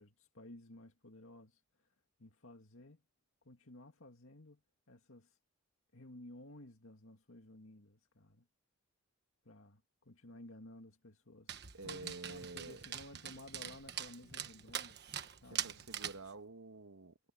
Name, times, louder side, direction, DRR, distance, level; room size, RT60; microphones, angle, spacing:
voice 1, 0.0-3.0 3.4-4.6 4.9-5.4 5.9-8.5 9.4-11.5 11.8-16.0, left 1 dB, 65° left, 2.2 m, -55 dB
Dog, 11.5-16.3, right 10 dB, 50° right, 1.4 m, -43 dB
voice 2, 11.7-12.8 15.6-17.2, right 3 dB, 75° right, 1.6 m, -49 dB
head